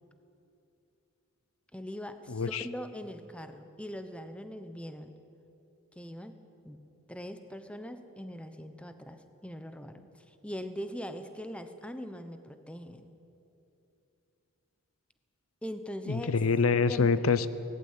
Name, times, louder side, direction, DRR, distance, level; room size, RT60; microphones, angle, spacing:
voice 1, 1.7-5.1 6.0-6.4 6.6-6.8 7.1-13.1 15.6-16.4 16.9-17.1, equal, 5° left, 9 dB, 0.9 m, -41 dB
voice 2, 2.3-2.6 16.1-17.5, left 4 dB, 80° left, 15 dB, 0.7 m, -26 dB
18.5 x 15.5 x 9.6 m, 2.8 s
head